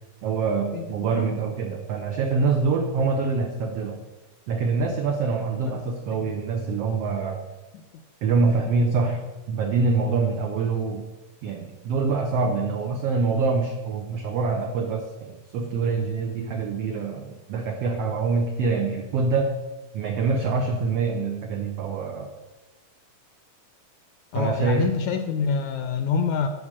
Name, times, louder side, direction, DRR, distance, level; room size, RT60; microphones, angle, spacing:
voice 1, 0.2-4.0 4.5-7.5 8.2-11.1 11.4-19.6 19.9-22.3 24.3-24.9, right 4 dB, 80° right, 4 dB, 1.4 m, -25 dB
voice 2, 24.3-26.5, left 6 dB, 80° left, 7 dB, 1.7 m, -26 dB
11.5 x 4.9 x 7.4 m, 1.2 s
omnidirectional pair, 3.8 m